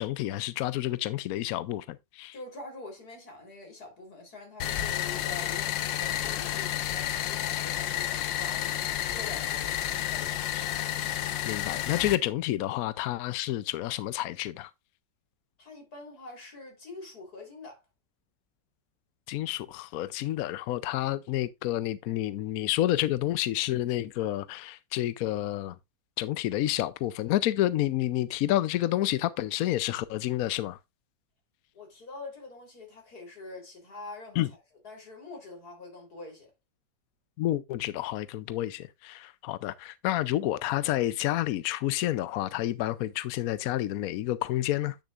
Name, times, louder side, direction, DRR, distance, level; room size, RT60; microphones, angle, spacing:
voice 1, 0.0-2.3 10.5-10.7 11.5-14.7 19.3-25.8 26.2-30.8 34.4-34.5 37.4-45.0, left 14 dB, 70° left, 0.8 m, -29 dB
voice 2, 2.3-5.7 6.0-8.8 9.1-10.4 15.6-17.8 31.7-34.6 34.8-36.5, left 2 dB, 55° left, 4.0 m, -45 dB
sound 1, 4.6-12.2, left 12 dB, 90° left, 1.4 m, -31 dB
10.0 x 6.6 x 2.4 m
omnidirectional pair, 2.0 m